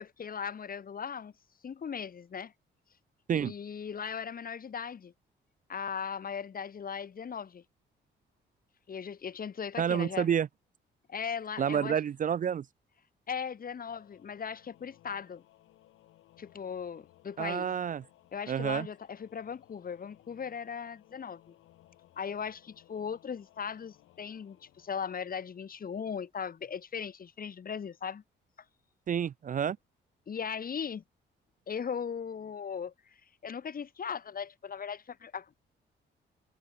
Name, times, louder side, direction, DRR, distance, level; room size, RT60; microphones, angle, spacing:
voice 1, 0.0-1.3 1.6-2.5 3.3-5.1 5.7-7.6 8.9-10.3 11.1-12.0 13.3-15.4 16.4-17.7 18.3-21.6 22.2-28.2 30.3-31.0 31.7-32.9 33.4-35.5, left 7 dB, 45° left, 4.3 m, -38 dB
voice 2, 9.8-10.5 11.6-12.6 17.4-18.0 18.5-18.9 29.1-29.8, right 8 dB, 40° right, 0.5 m, -29 dB
Singing / Musical instrument, 13.6-26.0, left 15 dB, 85° left, 6.9 m, -62 dB
cardioid pair, 90°, 20 cm